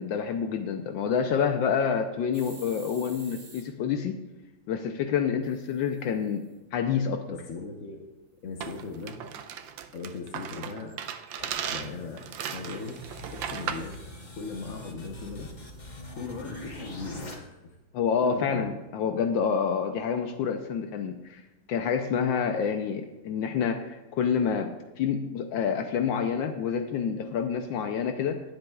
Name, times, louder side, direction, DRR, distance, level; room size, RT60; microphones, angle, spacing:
voice 1, 0.0-4.2 4.7-7.3 17.9-21.4 21.7-28.4, left 7 dB, 80° left, 5 dB, 1.4 m, -28 dB
sound 1, 2.3-3.6 5.4-6.5 8.6-9.1, right 3 dB, 60° right, 3.0 m, -50 dB
voice 2, 7.3-8.0 8.4-9.2 9.9-11.0 11.4-12.2 12.5-13.0 13.3-14.0 14.3-15.5 16.1-17.7 18.2-18.6, left 4 dB, 45° left, 0 dB, 1.2 m, -38 dB
sound 2, 8.6-13.9, right 8 dB, 85° right, 1.4 m, -36 dB
sound 3, 11.1-17.3, left 1 dB, 25° left, 1.4 m, -43 dB
22.5 x 7.7 x 2.4 m, 1.1 s
omnidirectional pair, 2.1 m